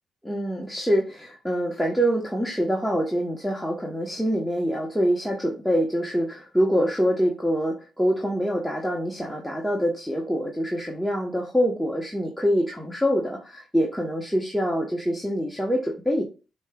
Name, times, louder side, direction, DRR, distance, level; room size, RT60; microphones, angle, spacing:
voice 1, 0.2-16.2, equal, ahead, -1 dB, 0.9 m, -25 dB
5.2 x 2.8 x 2.2 m, 0.31 s
cardioid pair, 90°, 0 cm